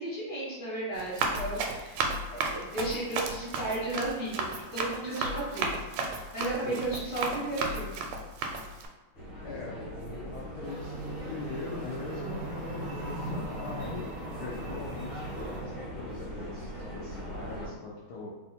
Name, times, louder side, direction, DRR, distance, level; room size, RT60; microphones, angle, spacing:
voice 1, 0.0-8.0, right 2 dB, 25° right, -9 dB, 0.7 m, -34 dB
Run, 0.9-8.9, right 3 dB, 90° right, 1.5 m, -34 dB
sound 1, 9.1-17.7, equal, 40° left, 0.8 m, -40 dB
voice 2, 9.4-14.1 14.4-18.3, left 3 dB, 75° left, -4 dB, 0.9 m, -41 dB
sound 2, 10.6-15.6, right 2 dB, 65° right, 0.8 m, -40 dB
3.4 x 2.4 x 4.1 m, 1.2 s
omnidirectional pair, 2.4 m